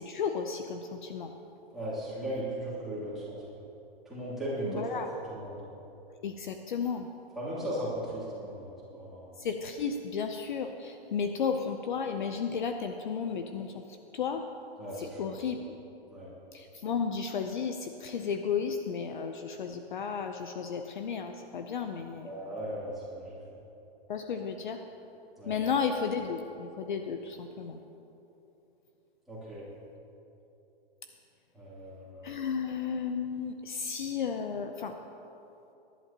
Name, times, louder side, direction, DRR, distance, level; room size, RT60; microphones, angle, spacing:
voice 1, 0.0-1.3 4.6-5.1 6.2-7.1 9.4-13.8 14.1-14.4 15.0-15.7 16.5-22.3 24.1-24.8 25.5-27.8 32.2-34.9, left 6 dB, 50° left, 6 dB, 0.7 m, -33 dB
voice 2, 1.7-3.4 4.1-5.0 5.3-5.6 7.3-9.3 14.8-15.4 16.1-16.3 22.2-23.4 25.4-25.6 29.3-29.6 31.5-32.4, right 1 dB, ahead, -11 dB, 2.6 m, -37 dB
22.5 x 11.0 x 2.9 m, 3.0 s
hypercardioid pair, 170°, 31 cm